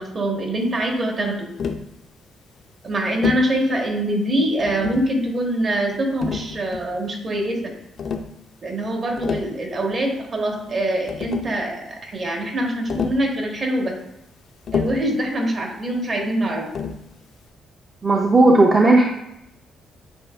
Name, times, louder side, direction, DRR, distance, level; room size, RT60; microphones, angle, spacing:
voice 1, 0.0-1.5 2.8-7.7 8.6-13.9 14.7-16.7, right 1 dB, 45° right, 1 dB, 1.1 m, -24 dB
Tap, 1.6-1.9 3.2-3.5 4.6-5.2 6.2-7.0 8.0-8.3 9.0-9.6 10.7-10.8 11.1-11.6 12.9-13.3 14.7-15.1 16.7-17.1, left 6 dB, 60° left, 0.4 m, -28 dB
voice 2, 18.0-19.0, right 2 dB, 30° right, -1 dB, 0.5 m, -14 dB
7.7 x 2.8 x 2.3 m, 0.86 s
cardioid pair, 90°, 0 cm